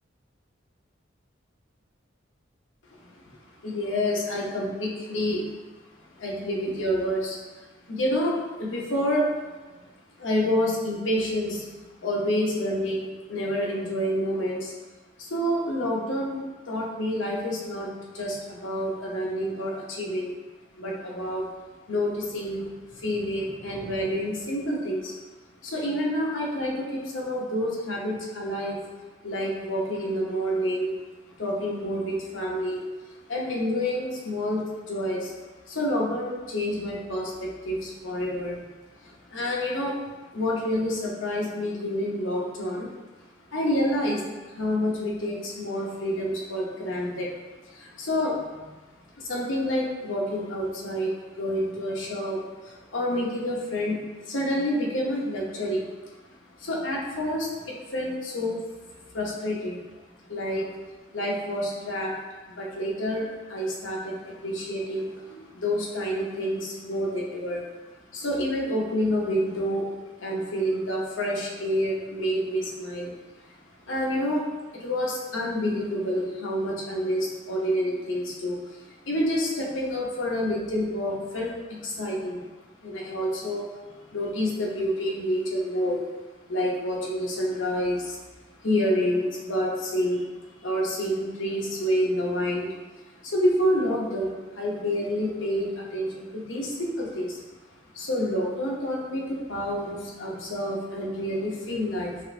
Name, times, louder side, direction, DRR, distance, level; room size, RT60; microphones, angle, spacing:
voice 1, 3.6-5.5 6.2-9.5 10.2-11.7 12.0-14.7 15.2-17.9 18.1-20.3 20.8-21.5 21.9-25.2 25.6-28.8 29.2-31.0 31.4-32.8 33.3-35.3 35.6-38.6 39.0-39.9 40.3-42.9 43.5-47.3 47.6-48.7 49.2-54.0 54.3-56.2 56.6-58.6 59.1-59.8 60.3-60.7 61.1-62.1 62.5-67.7 68.1-69.9 70.2-73.1 73.4-73.5 73.8-74.4 74.7-82.4 82.8-86.0 86.5-88.2 88.6-90.3 90.6-92.8 93.2-97.4 97.9-102.2, equal, 85° left, -3 dB, 1.0 m, -28 dB
5.7 x 2.6 x 3.3 m, 1.2 s
head